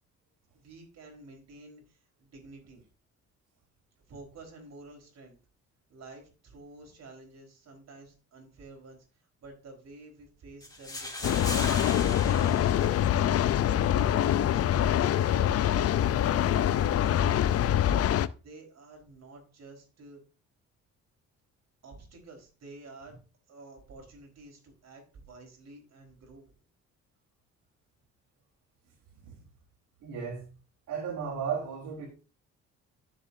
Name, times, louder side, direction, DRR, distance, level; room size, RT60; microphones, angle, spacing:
voice 1, 0.5-2.9 4.1-5.4 5.9-11.7 12.2-13.3 13.6-17.8 18.4-20.2 21.8-23.2 23.5-26.6, right 2 dB, 60° right, 4.3 m, -50 dB
sound 1, 10.6-13.6, left 2 dB, 10° left, 2.6 m, -39 dB
sound 2, 11.2-18.3, left 10 dB, 50° left, 0.5 m, -25 dB
voice 2, 30.0-30.5 30.9-32.1, right 6 dB, 80° right, 3.3 m, -34 dB
13.0 x 7.2 x 2.6 m
cardioid pair, 90°, 30 cm